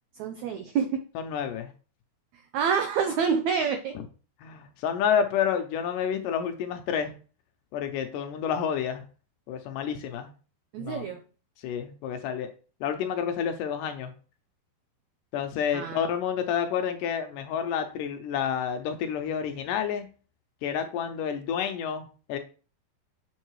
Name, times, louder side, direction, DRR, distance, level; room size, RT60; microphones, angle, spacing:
voice 1, 0.2-0.9 2.5-3.9 10.7-11.2 15.7-16.0, right 6 dB, 85° right, 5 dB, 1.6 m, -27 dB
voice 2, 1.2-1.7 4.4-7.1 7.7-9.0 9.5-10.3 10.8-11.1 11.6-12.5 12.8-14.1 15.3-20.1 20.6-22.4, left 8 dB, 75° left, 7 dB, 2.1 m, -29 dB
7.3 x 5.4 x 3.1 m, 0.37 s
omnidirectional pair, 4.1 m